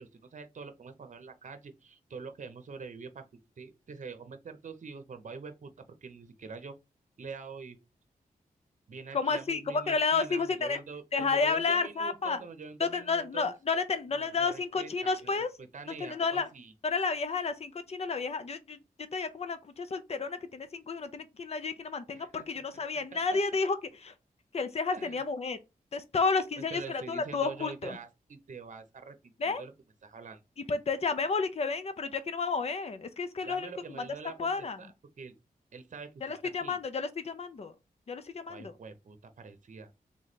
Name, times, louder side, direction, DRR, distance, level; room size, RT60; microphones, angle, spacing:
voice 1, 0.0-3.3 3.6-6.8 7.2-7.8 8.9-13.5 14.1-16.7 22.1-22.3 24.9-25.2 26.6-29.7 30.0-30.4 33.4-35.3 35.7-36.2 36.6-36.8 38.5-39.9, right 4 dB, 55° right, 0.8 m, -45 dB
voice 2, 9.1-10.8 11.1-12.4 12.8-15.5 16.0-16.5 16.8-18.8 19.1-23.8 24.0-24.1 24.5-25.6 25.9-28.0 29.4-29.6 30.7-33.7 34.0-34.1 34.4-34.8 36.2-37.7 38.1-38.7, left 4 dB, 45° left, 0.6 m, -31 dB
3.5 x 3.2 x 4.1 m
wide cardioid pair, 100°, 15 cm